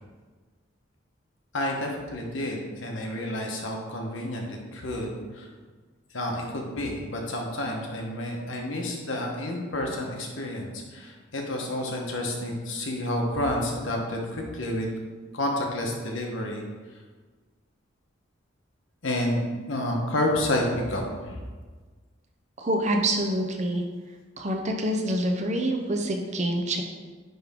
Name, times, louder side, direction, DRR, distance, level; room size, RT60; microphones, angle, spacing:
voice 1, 1.5-5.5 6.1-14.9 15.3-16.7 19.0-21.4, left 1 dB, 70° left, 0 dB, 1.1 m, -30 dB
voice 2, 22.6-23.8 24.4-26.8, right 1 dB, 35° right, 3 dB, 0.6 m, -26 dB
9.4 x 3.5 x 3.6 m, 1.4 s
head